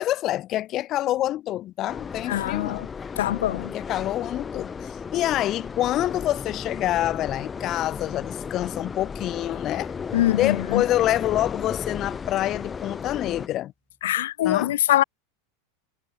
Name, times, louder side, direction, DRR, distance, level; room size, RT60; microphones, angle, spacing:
voice 1, 0.0-2.8 3.6-9.9 10.3-13.7 14.4-14.7, left 14 dB, 40° left, 1.3 m, -27 dB
sound 1, 1.9-13.5, left 6 dB, 20° left, 3.0 m, -35 dB
voice 2, 2.3-2.9 3.2-3.7 10.1-10.8 14.0-15.0, left 13 dB, 85° left, 1.8 m, -23 dB
sound 2, 13.9-14.2, left 1 dB, 5° left, 7.3 m, -52 dB
supercardioid pair, 130°, 0 cm